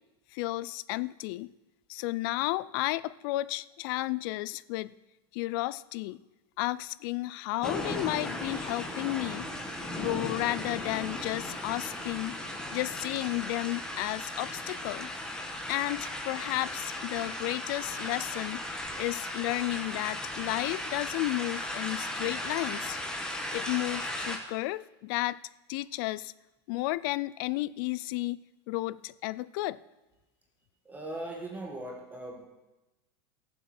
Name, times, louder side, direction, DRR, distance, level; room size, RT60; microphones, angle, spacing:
voice 1, 0.3-1.5 1.9-4.9 5.3-6.2 6.6-9.5 9.9-12.4 12.7-15.1 15.7-23.0 23.5-25.4 25.7-26.3 26.7-29.8, left 18 dB, 55° left, 19 dB, 0.4 m, -33 dB
sound 1, 7.6-24.4, left 1 dB, 5° left, 1.3 m, -36 dB
voice 2, 30.8-32.5, right 1 dB, 10° right, 0 dB, 1.4 m, -39 dB
16.5 x 7.5 x 6.0 m, 1.0 s
supercardioid pair, 150°, 14 cm